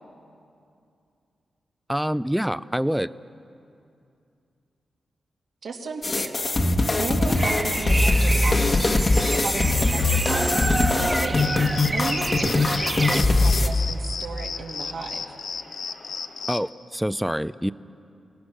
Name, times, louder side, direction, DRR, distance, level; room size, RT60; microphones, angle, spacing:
voice 1, 1.9-3.1 16.5-17.7, equal, 5° right, 16 dB, 0.5 m, -26 dB
voice 2, 5.6-6.4 6.7-9.0 9.3-11.6 11.9-15.4, right 4 dB, 70° right, 0 dB, 2.6 m, -35 dB
sound 1, 6.0-13.7, left 2 dB, 35° left, 1.3 m, -21 dB
Bird vocalization bird call bird song, 7.4-13.2, right 2 dB, 25° right, 1.4 m, -28 dB
sound 2, 11.4-16.7, left 5 dB, 60° left, 0.9 m, -35 dB
28.5 x 18.5 x 6.3 m, 2.6 s
cardioid pair, 90°, 0 cm